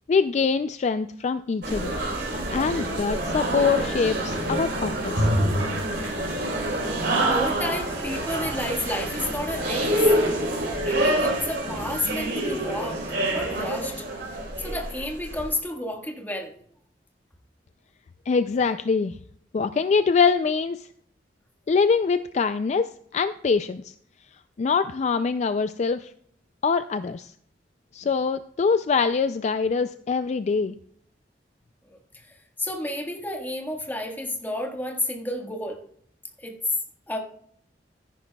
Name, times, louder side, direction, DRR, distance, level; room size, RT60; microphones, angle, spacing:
voice 1, 0.1-1.9 2.5-5.3 18.3-19.1 19.5-20.9 21.7-23.8 24.6-26.1 26.6-27.3 27.9-30.7, left 5 dB, 40° left, 11 dB, 0.3 m, -24 dB
sound 1, 1.6-15.5, right 1 dB, 70° right, 3.6 m, -26 dB
voice 2, 7.3-10.1 10.8-14.1 14.6-16.5 32.1-32.3 32.6-35.8 36.4-36.6 37.1-37.2, left 1 dB, 10° left, 2 dB, 1.5 m, -31 dB
13.5 x 11.0 x 2.3 m, 0.63 s
head